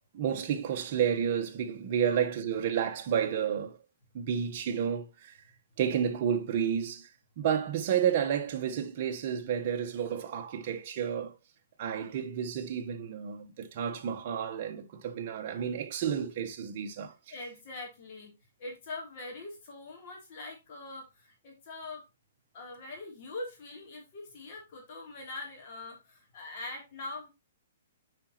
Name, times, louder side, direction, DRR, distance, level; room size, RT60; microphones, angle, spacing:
voice 1, 0.1-3.8 4.1-5.4 5.8-7.1 7.4-11.4 11.8-17.1, right 8 dB, 40° right, 1.1 m, -31 dB
voice 2, 2.1-2.6 17.3-18.3 18.6-22.0 22.5-27.3, left 2 dB, 40° left, 3.0 m, -43 dB
8.1 x 5.0 x 2.9 m
hypercardioid pair, 160°, 0 cm